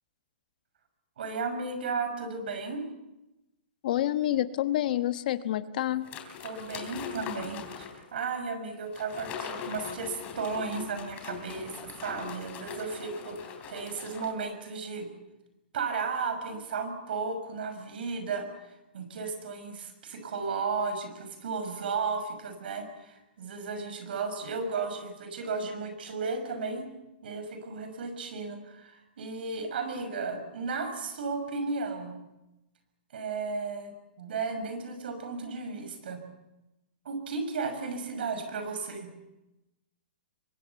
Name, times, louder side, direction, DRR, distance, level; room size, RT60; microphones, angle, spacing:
voice 1, 1.2-2.8 6.4-7.6 8.1-15.1 15.7-26.9 27.2-32.1 33.1-36.2 37.0-39.1, right 4 dB, 70° right, 8 dB, 6.2 m, -34 dB
voice 2, 3.8-6.1, left 13 dB, 55° left, 11 dB, 1.3 m, -28 dB
sound 1, 6.0-8.1 8.9-14.3, left 8 dB, 25° left, 3.5 m, -41 dB
24.0 x 22.0 x 7.1 m, 0.96 s
hypercardioid pair, 155°, 6 cm